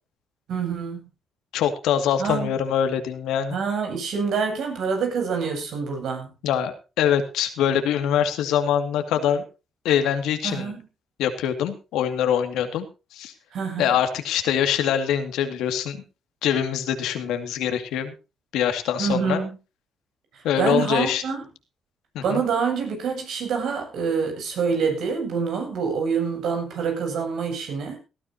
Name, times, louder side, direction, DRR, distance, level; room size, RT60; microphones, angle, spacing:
voice 1, 0.5-1.1 2.2-2.5 3.5-6.3 10.4-10.8 13.5-14.0 19.0-19.5 20.6-21.5 22.2-28.0, right 5 dB, 75° right, 4 dB, 7.7 m, -26 dB
voice 2, 1.5-3.5 6.4-9.4 9.8-10.7 11.2-12.9 13.1-13.3 13.8-16.0 16.4-18.1 18.5-19.4 20.4-21.2 22.1-22.4, left 9 dB, 90° left, 8 dB, 2.3 m, -24 dB
18.5 x 13.5 x 2.8 m, 0.30 s
cardioid pair, 90°, 0 cm